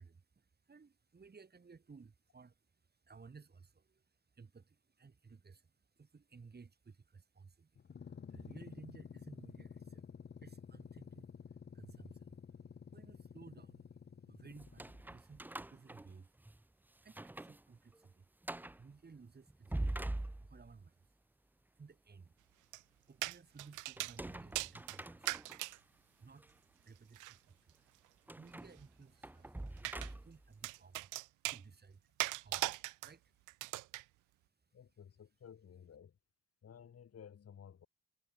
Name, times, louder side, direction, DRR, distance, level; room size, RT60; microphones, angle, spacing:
voice 1, 0.0-10.1 10.3-13.9 14.2-16.4 16.9-18.3 18.6-21.2 21.7-22.4 23.0-25.5 25.7-28.0 28.2-33.6 34.0-34.1 34.6-34.7, right 5 dB, 35° right, 6.7 m, -59 dB
sound 1, 7.8-15.1, left 7 dB, 40° left, 1.4 m, -52 dB
sound 2, 14.6-16.6 17.0-17.6 17.9-18.0 18.4-18.8 19.5-20.8 24.0-25.7 26.4-26.5 28.3-30.5, right 1 dB, 5° right, 0.6 m, -44 dB
sound 3, 22.7-22.8 23.2-24.2 24.5-25.8 27.1-27.4 29.8-30.1 30.6-31.6 32.2-33.1 33.5-34.0, right 19 dB, 85° right, 0.5 m, -39 dB
voice 2, 34.7-36.2 36.6-37.9, left 8 dB, 55° left, 4.8 m, -55 dB
cardioid pair, 90°, 30 cm